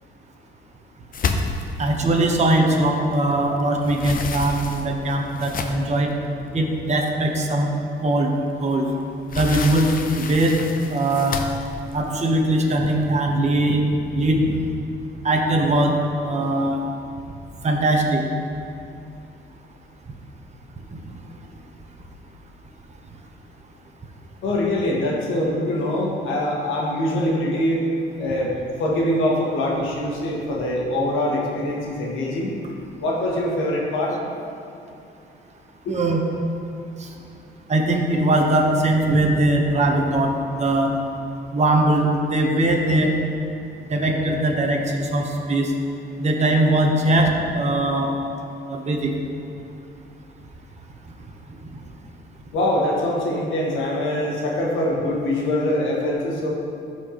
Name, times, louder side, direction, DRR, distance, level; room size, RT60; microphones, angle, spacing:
sound 1, 1.1-3.3 3.6-6.0 6.7-6.8 7.2-7.3 8.7-13.0, left 4 dB, 45° left, 0.7 m, -30 dB
voice 1, 1.8-6.1 6.5-7.7 8.0-8.3 8.6-8.9 9.3-10.6 10.9-11.4 11.9-13.8 14.1-14.6 15.2-15.9 16.2-16.8 17.6-18.2 20.9-21.0 35.9-36.2 37.0-37.1 37.7-40.9 41.5-43.1 43.9-45.7 46.2-48.1 48.7-49.1, right 1 dB, 35° right, 1 dB, 1.0 m, -20 dB
voice 2, 24.4-27.9 28.2-28.5 28.8-32.5 33.0-34.2 35.8-35.9 52.5-56.5, left 1 dB, 85° left, -3 dB, 1.6 m, -23 dB
13.5 x 4.5 x 3.0 m, 2.6 s
cardioid pair, 90°, 20 cm